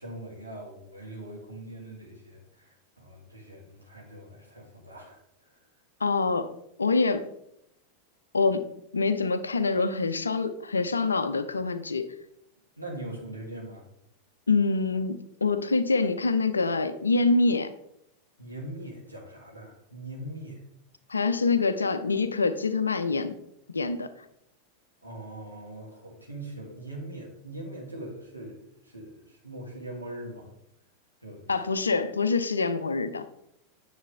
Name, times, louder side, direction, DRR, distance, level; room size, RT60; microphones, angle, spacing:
voice 1, 0.0-5.6 12.8-13.8 18.4-20.6 25.0-30.5 31.2-31.5, right 1 dB, 90° right, 2.6 m, -41 dB
voice 2, 6.0-6.5 6.8-7.3 8.3-8.7 8.9-12.1 14.5-17.7 21.1-23.4 23.7-24.1 31.5-33.2, left 4 dB, 75° left, 0.7 m, -25 dB
9.7 x 6.6 x 3.4 m
figure-of-eight pair, 90°, 0 cm